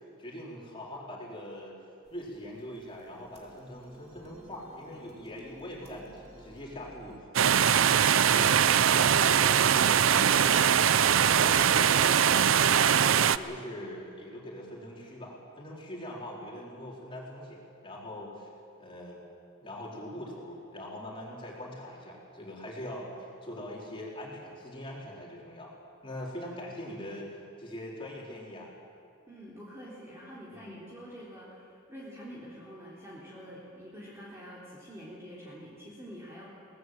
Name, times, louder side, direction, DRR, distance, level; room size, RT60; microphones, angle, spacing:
voice 1, 0.2-1.8 2.1-10.8 11.1-18.5 18.8-19.2 19.6-25.7 26.0-28.7 30.5-30.8, left 1 dB, 25° left, -4 dB, 4.1 m, -42 dB
sound 1, 2.0-7.2, right 1 dB, 35° right, 3.2 m, -54 dB
sound 2, 7.3-13.4, right 8 dB, 70° right, 0.5 m, -22 dB
voice 2, 29.3-36.5, equal, 15° right, -7 dB, 3.5 m, -46 dB
22.5 x 19.0 x 7.8 m, 2.6 s
head